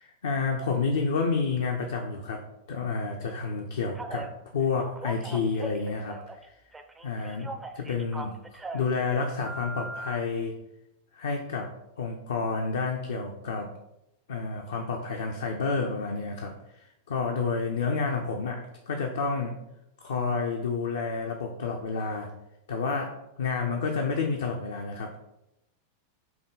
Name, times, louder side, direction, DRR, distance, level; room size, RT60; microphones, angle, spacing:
voice 1, 0.2-6.4 7.0-10.5 11.1-13.7 14.3-19.6 20.0-22.3 22.7-25.2, left 4 dB, 60° left, 2 dB, 0.4 m, -30 dB
Telephone, 3.9-4.3 4.8-6.4 6.7-8.9 9.4-10.2, right 2 dB, 10° right, 0.4 m, -39 dB
5.9 x 2.2 x 3.7 m, 0.87 s
figure-of-eight pair, 90°, 0 cm